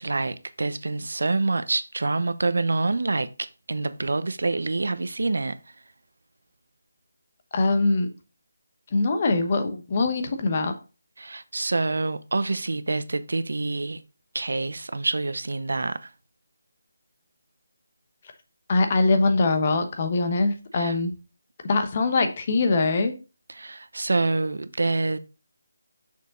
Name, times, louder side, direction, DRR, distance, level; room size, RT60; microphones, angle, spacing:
voice 1, 0.0-5.6 11.2-14.0 14.3-16.1 20.8-21.0 23.5-25.2, right 3 dB, 75° right, 0.7 m, -27 dB
voice 2, 7.5-8.1 8.9-10.7 18.7-21.1 21.7-23.1, left 3 dB, 35° left, 1.1 m, -22 dB
6.5 x 5.3 x 3.8 m
figure-of-eight pair, 165°, 0 cm